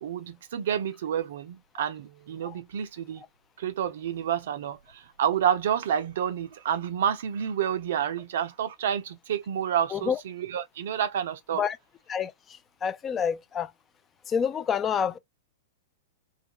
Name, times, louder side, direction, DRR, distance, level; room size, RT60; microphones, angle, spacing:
voice 1, 0.0-3.2 3.6-11.6, right 9 dB, 65° right, 0.4 m, -29 dB
voice 2, 12.8-13.7 14.3-15.2, left 7 dB, 25° left, 0.4 m, -27 dB
2.3 x 2.3 x 2.8 m
hypercardioid pair, 110°, 0 cm